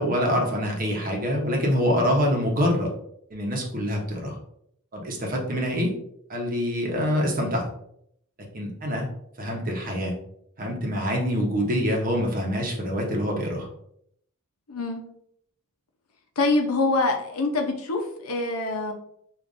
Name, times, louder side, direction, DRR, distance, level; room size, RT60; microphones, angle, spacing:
voice 1, 0.0-2.9 3.3-4.4 4.9-5.9 6.3-7.7 8.5-9.1 9.4-10.1 10.6-13.7, equal, 40° right, 0 dB, 0.9 m, -25 dB
voice 2, 14.7-15.0 16.4-18.9, left 3 dB, 75° left, 4 dB, 0.7 m, -25 dB
4.9 x 2.5 x 2.6 m, 0.71 s
head